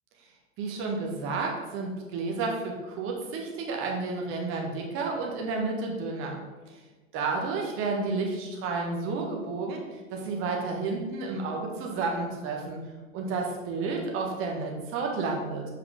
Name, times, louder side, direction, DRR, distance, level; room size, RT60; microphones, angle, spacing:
voice 1, 0.6-6.4 7.1-12.8 13.1-15.7, right 3 dB, 30° right, 0 dB, 1.4 m, -31 dB
7.7 x 4.7 x 3.5 m, 1.3 s
figure-of-eight pair, 95°, 39 cm